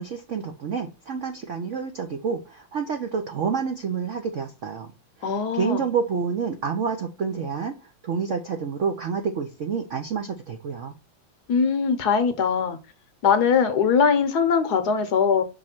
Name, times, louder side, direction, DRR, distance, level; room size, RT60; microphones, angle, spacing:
voice 1, 0.0-4.9 5.2-10.9, right 6 dB, 65° right, 0.7 m, -28 dB
voice 2, 5.2-5.8 11.5-12.8 13.2-15.4, left 6 dB, 60° left, 1.2 m, -21 dB
6.1 x 3.2 x 5.8 m
omnidirectional pair, 2.1 m